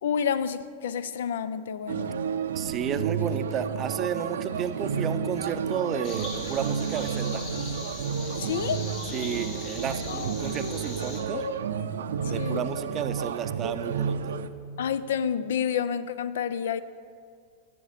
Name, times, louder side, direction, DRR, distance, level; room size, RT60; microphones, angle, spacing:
voice 1, 0.0-2.1 8.4-8.9 10.1-10.3 11.3-11.6 12.3-12.6 14.8-16.8, left 8 dB, 80° left, 15 dB, 0.4 m, -29 dB
sound 1, 1.9-14.5, right 6 dB, 90° right, 0.4 m, -31 dB
voice 2, 2.5-7.5 9.1-11.5 12.2-14.4, right 8 dB, 30° right, 11 dB, 0.5 m, -32 dB
sound 2, 6.0-11.2, left 2 dB, 50° left, 2.3 m, -40 dB
10.0 x 8.6 x 5.1 m, 2.3 s
hypercardioid pair, 130°, 0 cm